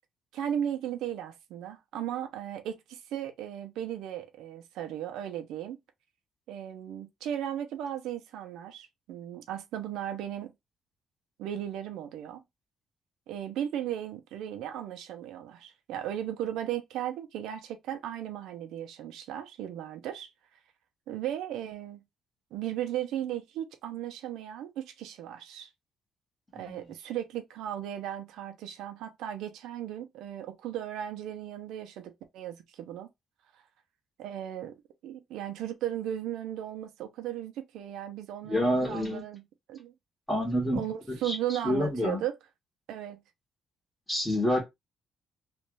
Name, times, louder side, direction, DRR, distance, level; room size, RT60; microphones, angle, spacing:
voice 1, 0.3-5.8 6.5-10.5 11.4-12.4 13.3-20.3 21.1-22.0 22.5-25.7 26.5-33.1 34.2-34.7 35.0-39.4 39.7-39.9 40.7-42.4 42.9-43.2, right 11 dB, 90° right, 0.7 m, -36 dB
voice 2, 38.4-39.2 40.3-40.8 41.1-42.2 44.1-44.6, left 1 dB, 10° left, 1.6 m, -28 dB
3.1 x 2.5 x 3.1 m
cardioid pair, 90°, 0 cm